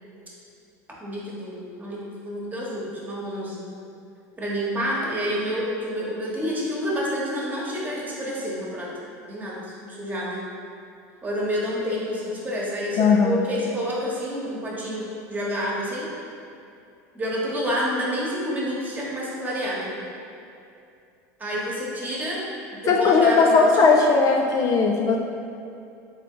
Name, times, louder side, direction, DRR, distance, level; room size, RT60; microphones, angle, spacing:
voice 1, 1.0-3.6 4.4-8.9 9.3-10.4 11.2-16.1 17.1-20.0 21.4-22.4 22.8-23.9, equal, 20° right, -5 dB, 1.1 m, -28 dB
voice 2, 13.0-13.4 22.9-25.2, left 4 dB, 40° left, 1 dB, 0.3 m, -18 dB
3.6 x 3.4 x 3.8 m, 2.6 s
hypercardioid pair, 95°, 9 cm